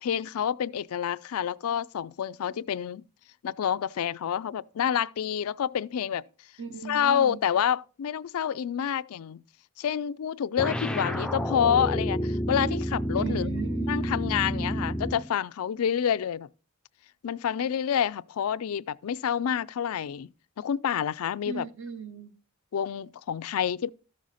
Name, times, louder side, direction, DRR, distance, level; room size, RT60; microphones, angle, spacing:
voice 1, 0.0-3.0 3.4-6.2 6.8-9.4 9.8-13.5 13.9-16.5 17.2-20.3 20.6-21.7 22.7-23.9, left 8 dB, 80° left, 0.4 m, -28 dB
voice 2, 6.6-7.4 13.1-13.9 21.5-22.3, right 5 dB, 55° right, 0.9 m, -37 dB
sound 1, 10.6-15.3, equal, 5° left, 0.4 m, -29 dB
13.5 x 6.3 x 4.1 m
head